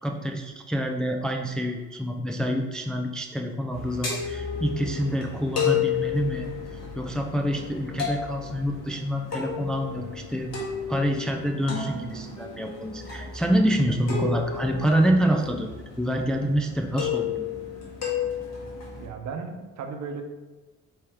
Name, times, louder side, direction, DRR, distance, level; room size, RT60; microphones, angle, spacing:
voice 1, 0.0-6.5 7.0-10.5 10.9-15.7 16.0-17.4, equal, 5° left, 3 dB, 0.3 m, -26 dB
sound 1, 3.7-19.1, left 7 dB, 60° left, 1.5 m, -33 dB
sound 2, 7.2-16.6, left 3 dB, 20° left, 0.8 m, -49 dB
voice 2, 19.0-20.2, right 5 dB, 65° right, 5 dB, 0.7 m, -35 dB
4.6 x 3.4 x 3.5 m, 1.2 s
cardioid pair, 90°, 30 cm